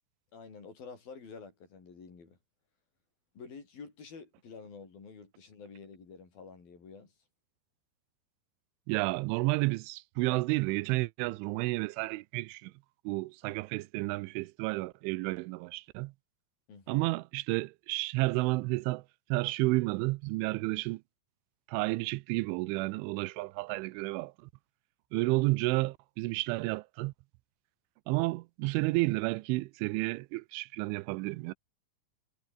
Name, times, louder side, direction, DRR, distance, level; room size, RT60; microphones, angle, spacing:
voice 1, 0.3-2.4 3.4-7.1 16.7-17.1, left 5 dB, 50° left, 7.0 m, -49 dB
voice 2, 8.9-12.7 13.1-16.1 16.9-19.0 19.3-21.0 21.7-24.3 25.1-27.1 28.1-31.5, right 22 dB, 90° right, 3.1 m, -31 dB
omnidirectional pair, 5.5 m